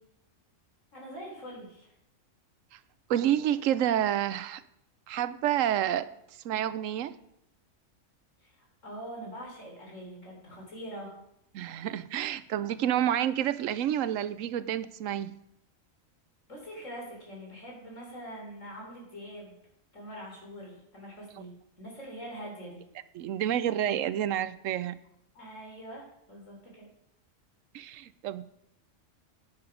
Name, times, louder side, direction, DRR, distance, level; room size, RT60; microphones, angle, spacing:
voice 1, 0.9-1.9 8.4-11.1 16.5-19.6 19.9-22.8 25.3-26.9, equal, 80° left, -1 dB, 4.1 m, -44 dB
voice 2, 3.1-4.6 5.1-6.1 6.4-7.1 11.5-15.3 23.1-25.0 27.7-28.4, right 11 dB, 90° right, 15 dB, 1.0 m, -29 dB
10.5 x 9.2 x 5.0 m, 0.78 s
omnidirectional pair, 1.3 m